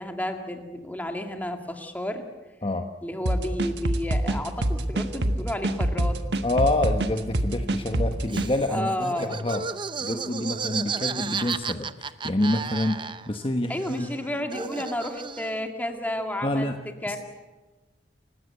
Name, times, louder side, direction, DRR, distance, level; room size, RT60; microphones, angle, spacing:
voice 1, 0.0-2.2 3.0-6.2 8.7-9.4 13.7-16.7 17.0-17.2, left 1 dB, 10° left, 4 dB, 2.2 m, -31 dB
voice 2, 2.6-2.9 6.4-9.6 10.0-14.1 16.4-16.8 17.1-17.2, left 1 dB, 30° left, 5 dB, 1.2 m, -27 dB
sound 1, 3.3-8.5, right 1 dB, 70° right, 1.5 m, -25 dB
Laughter, 8.3-13.5 13.7-15.7, right 5 dB, 30° right, 0.7 m, -33 dB
29.5 x 16.5 x 8.2 m, 1.2 s
head